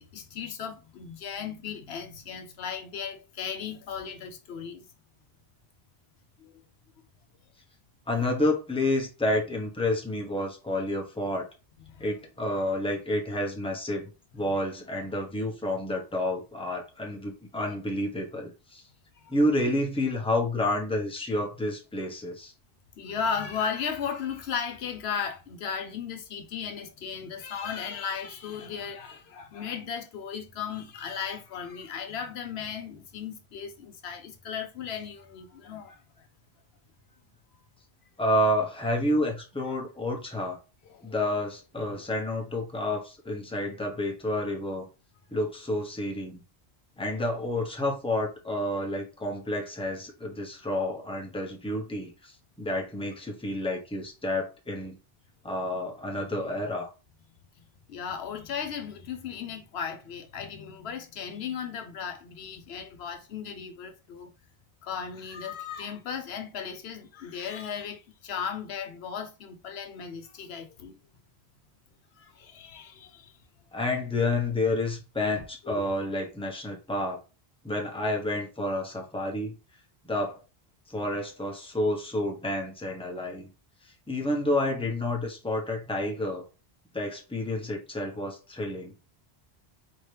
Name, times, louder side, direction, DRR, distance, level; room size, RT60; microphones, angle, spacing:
voice 1, 0.0-4.9 6.4-6.6 11.9-12.1 19.2-19.3 23.0-36.3 39.6-39.8 40.8-41.2 41.8-42.0 57.6-64.3 64.8-71.0 72.1-73.4 75.3-75.8, left 7 dB, 80° left, 0.9 m, -36 dB
voice 2, 8.1-11.5 12.0-18.8 19.3-22.5 38.2-40.6 41.0-44.9 45.3-46.4 47.0-55.0 55.4-56.9 73.7-77.2 77.6-79.5 80.0-80.4 80.9-83.5 84.1-86.4 86.9-88.9, left 1 dB, 5° left, 1.0 m, -29 dB
4.2 x 2.9 x 3.3 m
omnidirectional pair, 1.1 m